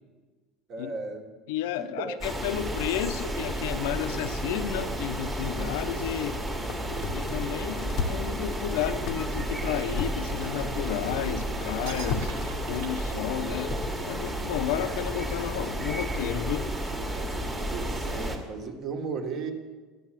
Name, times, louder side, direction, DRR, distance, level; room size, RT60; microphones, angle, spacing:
voice 1, 0.7-1.3 1.8-2.2 17.7-19.5, right 4 dB, 30° right, 5 dB, 1.5 m, -35 dB
voice 2, 1.5-6.4 7.1-12.4 12.7-13.8 14.0-16.7, left 12 dB, 80° left, 10 dB, 0.8 m, -32 dB
sound 1, 2.2-18.4, right 1 dB, 10° right, 1.6 m, -32 dB
sound 2, 6.3-16.8, left 5 dB, 35° left, 0.9 m, -39 dB
sound 3, 10.3-11.4 11.8-13.7, right 6 dB, 65° right, 1.9 m, -44 dB
14.5 x 9.9 x 7.4 m, 1.4 s
cardioid pair, 180°, 0 cm